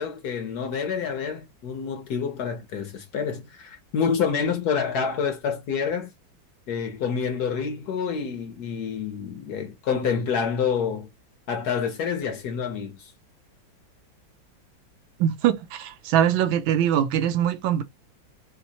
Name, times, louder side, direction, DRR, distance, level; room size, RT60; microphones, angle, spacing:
voice 1, 0.0-6.1 6.7-11.1 11.5-13.1, left 6 dB, 65° left, 1.1 m, -28 dB
voice 2, 15.2-17.8, right 10 dB, 85° right, 1.4 m, -22 dB
4.4 x 2.0 x 2.7 m
omnidirectional pair, 2.1 m